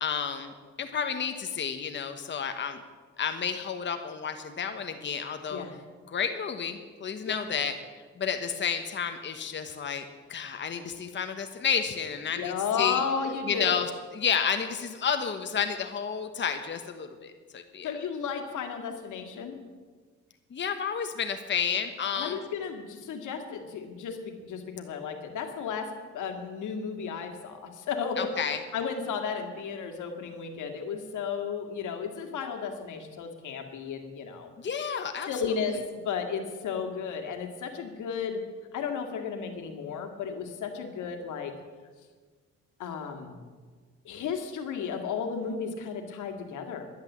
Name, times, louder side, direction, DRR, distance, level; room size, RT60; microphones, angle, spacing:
voice 1, 0.0-2.8 3.2-5.6 6.1-7.7 8.2-13.0 13.5-17.9 20.5-22.4 28.2-28.6 34.6-35.3, left 7 dB, 40° left, 7 dB, 1.2 m, -31 dB
voice 2, 12.3-13.7 17.8-19.6 22.2-25.9 26.1-34.5 35.3-35.8 36.0-38.4 38.7-41.5 42.8-43.4 44.0-46.9, left 6 dB, 80° left, 5 dB, 2.0 m, -34 dB
11.5 x 11.0 x 7.3 m, 1.5 s
cardioid pair, 90°, 30 cm